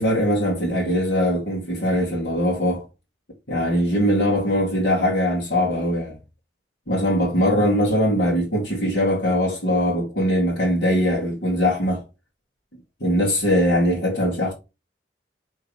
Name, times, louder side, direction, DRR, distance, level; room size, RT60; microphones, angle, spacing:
voice 1, 0.0-2.9 3.5-6.2 6.9-12.0 13.0-14.5, equal, 65° left, 2.6 m, -21 dB
6.4 x 3.8 x 5.0 m
head